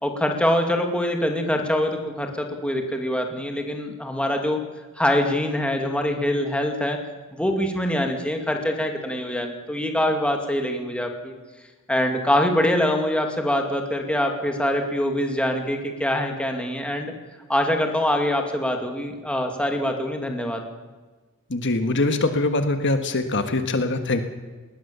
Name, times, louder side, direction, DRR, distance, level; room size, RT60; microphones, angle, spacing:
voice 1, 0.0-4.6 5.0-7.0 7.3-11.3 11.9-17.1 17.5-20.6, left 1 dB, 5° left, 3 dB, 2.4 m, -24 dB
voice 2, 21.5-24.2, left 2 dB, 55° left, 7 dB, 1.5 m, -23 dB
19.5 x 19.5 x 7.0 m, 1.3 s
head